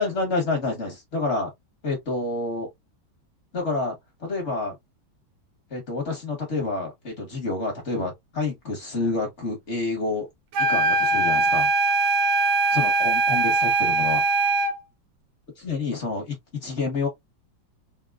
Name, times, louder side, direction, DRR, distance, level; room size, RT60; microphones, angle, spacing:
voice 1, 0.0-1.5 1.8-2.7 3.5-4.7 5.7-10.3 10.6-11.7 12.7-14.2 15.6-17.1, left 3 dB, 40° left, 1.2 m, -28 dB
sound 1, 10.5-14.8, right 3 dB, 80° right, 1.4 m, -21 dB
3.8 x 2.2 x 2.3 m
omnidirectional pair, 2.1 m